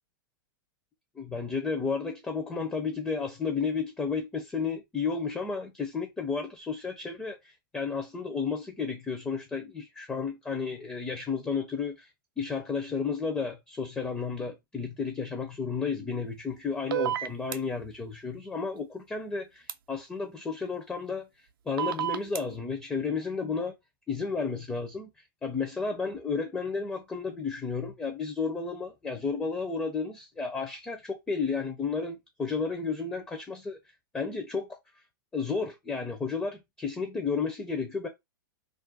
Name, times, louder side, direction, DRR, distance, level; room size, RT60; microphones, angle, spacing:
voice 1, 1.2-12.1 12.4-21.3 21.7-23.7 24.1-25.1 25.4-33.8 34.1-34.8 35.3-38.1, left 5 dB, 10° left, 0.4 m, -32 dB
sound 1, 16.9-17.6 19.7-19.8 21.8-22.4, right 12 dB, 75° right, 0.4 m, -29 dB
2.4 x 2.1 x 3.8 m
hypercardioid pair, 135°, 12 cm